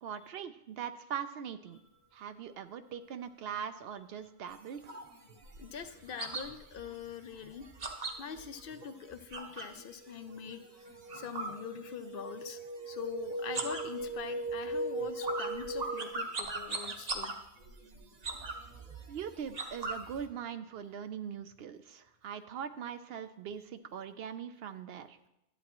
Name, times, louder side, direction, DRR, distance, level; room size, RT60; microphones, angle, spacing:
voice 1, 0.0-1.8 2.1-4.9 19.1-25.2, right 8 dB, 75° right, 11 dB, 0.8 m, -41 dB
sound 1, 4.5-9.8 10.2-12.3 12.6-13.1 13.4-20.2, right 3 dB, 40° right, 0.9 m, -41 dB
voice 2, 5.6-7.7 8.2-10.6 11.1-12.6 12.9-17.3, left 8 dB, 65° left, 10 dB, 0.8 m, -43 dB
sound 2, 9.0-9.4 9.8-16.1, right 2 dB, 25° right, 0.4 m, -39 dB
11.5 x 8.3 x 3.0 m, 0.87 s
omnidirectional pair, 1.1 m